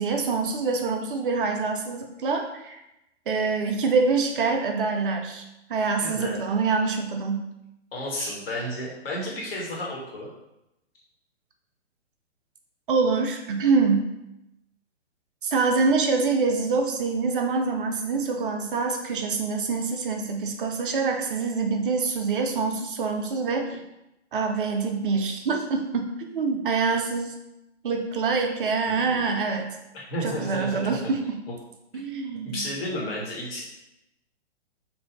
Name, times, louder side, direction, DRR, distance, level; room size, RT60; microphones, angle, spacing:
voice 1, 0.0-2.8 3.3-5.4 5.7-7.5 8.2-8.3 12.9-14.1 15.4-23.8 24.3-27.3 27.8-29.8 30.2-31.4 31.9-32.7, right 4 dB, 50° right, 3 dB, 0.5 m, -25 dB
voice 2, 6.0-6.4 7.9-10.3 28.8-29.2 29.9-31.1 32.4-33.6, equal, 55° left, -3 dB, 1.4 m, -32 dB
3.0 x 2.6 x 4.1 m, 0.89 s
figure-of-eight pair, 120°, 35 cm